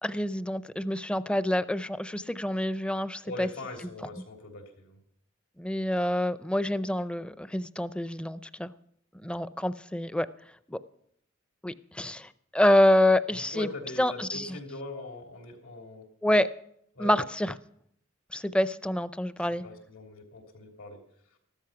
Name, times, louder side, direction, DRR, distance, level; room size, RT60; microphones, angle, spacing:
voice 1, 0.0-3.5 5.6-8.7 9.2-10.3 10.7-10.8 11.6-13.7 14.0-14.6 16.2-16.5 17.0-17.6 18.3-19.6, left 1 dB, 5° left, 15 dB, 0.4 m, -27 dB
voice 2, 3.2-5.0 13.5-16.0 17.0-17.1 19.6-21.0, left 2 dB, 80° left, 3 dB, 3.4 m, -41 dB
14.5 x 12.5 x 5.8 m, 0.71 s
head